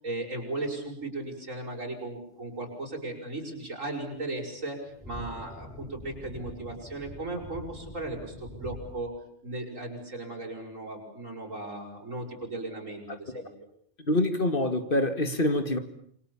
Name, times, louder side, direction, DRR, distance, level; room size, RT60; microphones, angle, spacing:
voice 1, 0.0-4.8 5.0-9.1 9.4-13.5, right 2 dB, 85° right, 6.8 m, -36 dB
sound 1, 4.5-8.9, equal, 5° left, 4.5 m, -44 dB
voice 2, 14.1-15.8, left 1 dB, 45° left, 2.3 m, -26 dB
28.0 x 25.0 x 7.2 m
omnidirectional pair, 1.3 m